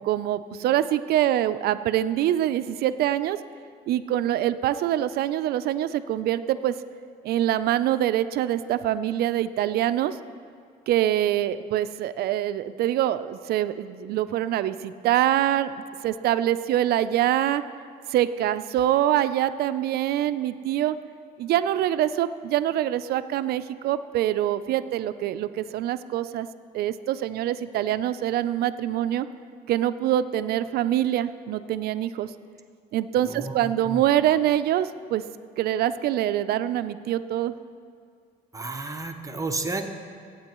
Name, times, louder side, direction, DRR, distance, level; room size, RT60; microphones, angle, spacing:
voice 1, 0.0-3.4 3.9-6.7 7.2-10.2 10.9-17.6 18.1-21.0 21.4-26.5 26.7-29.3 29.7-32.3 32.9-35.2 35.6-37.6, right 12 dB, 70° right, 13 dB, 0.5 m, -24 dB
voice 2, 33.2-34.0 38.5-39.9, right 3 dB, 20° right, 5 dB, 0.8 m, -32 dB
19.0 x 8.8 x 3.0 m, 2.3 s
cardioid pair, 110°, 17 cm